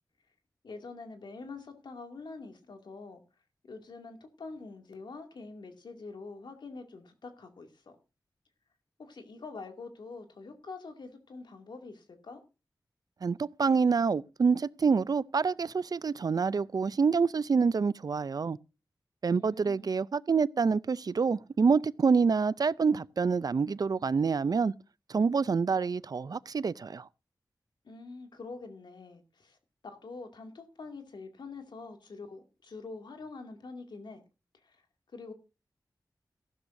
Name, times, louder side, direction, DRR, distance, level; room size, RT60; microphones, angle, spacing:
voice 1, 0.6-3.2 3.6-8.0 9.0-12.4 19.3-19.9 27.8-29.6 29.8-34.2 34.6-34.8 35.1-35.3, left 3 dB, 85° left, 2.4 m, -45 dB
voice 2, 13.2-18.6 19.2-24.7 25.1-27.1, right 5 dB, 60° right, 0.5 m, -27 dB
15.0 x 12.5 x 2.6 m
wide cardioid pair, 80°, 7 cm